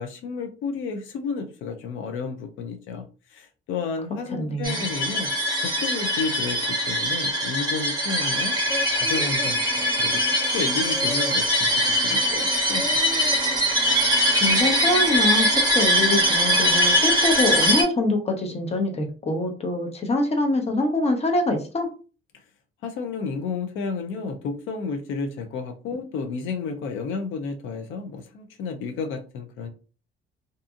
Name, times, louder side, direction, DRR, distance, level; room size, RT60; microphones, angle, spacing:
voice 1, 0.0-5.3 5.6-8.6 8.9-12.9 22.8-29.7, left 4 dB, 85° left, 5 dB, 0.5 m, -32 dB
voice 2, 4.3-4.8 14.4-21.9, left 2 dB, 30° left, 4 dB, 0.8 m, -24 dB
sound 1, 4.6-17.8, equal, 20° right, 0.9 m, -22 dB
sound 2, 8.7-15.5, left 2 dB, 65° left, 1.1 m, -37 dB
2.6 x 2.6 x 2.3 m, 0.35 s
cardioid pair, 90°, 20 cm